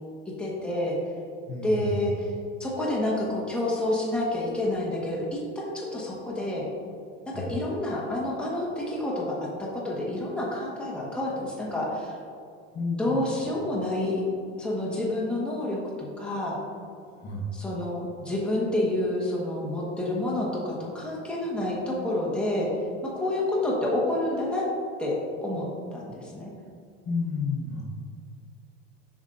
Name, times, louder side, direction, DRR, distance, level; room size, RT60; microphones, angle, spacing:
voice 1, 0.4-0.9 1.6-2.3 2.6-6.6 7.2-12.1 13.0-14.2 14.6-16.6 17.5-22.7 23.0-24.7 25.0-26.5, left 1 dB, 5° left, -5 dB, 1.3 m, -29 dB
voice 2, 1.5-2.0 7.3-7.5 12.7-13.3 17.1-17.5 27.0-27.8, left 3 dB, 35° left, -3 dB, 1.0 m, -31 dB
7.3 x 5.2 x 2.6 m, 2.4 s
supercardioid pair, 125°, 29 cm